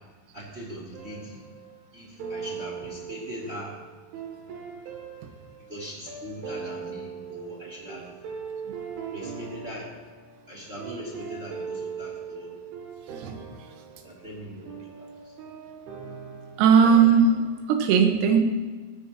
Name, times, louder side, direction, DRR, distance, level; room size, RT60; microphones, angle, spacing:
voice 1, 0.3-1.4 1.9-3.8 5.7-8.1 9.1-9.9 10.5-12.6 14.0-15.3, equal, 20° right, -4 dB, 1.9 m, -40 dB
sound 1, 0.9-1.8 2.2-17.5, right 6 dB, 65° right, 4.6 m, -40 dB
voice 2, 16.6-17.3 17.7-18.4, right 6 dB, 85° right, 4 dB, 4.2 m, -18 dB
19.5 x 14.5 x 3.0 m, 1.4 s
omnidirectional pair, 6.0 m